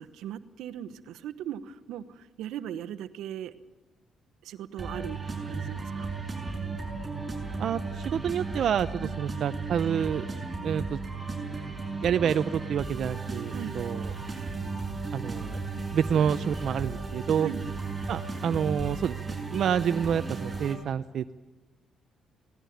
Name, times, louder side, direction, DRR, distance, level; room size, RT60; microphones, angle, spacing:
voice 1, 0.0-3.5 4.4-6.1 9.0-9.2 13.5-13.8 17.4-17.7, right 10 dB, 85° right, 11 dB, 1.0 m, -38 dB
sound 1, 4.8-20.7, right 3 dB, 25° right, 6.5 m, -35 dB
voice 2, 7.6-10.3 10.6-11.0 12.0-14.1 15.1-15.6 15.9-17.5 18.1-21.3, right 8 dB, 65° right, 11 dB, 0.6 m, -28 dB
18.0 x 18.0 x 9.4 m, 1.1 s
cardioid pair, 90°, 0 cm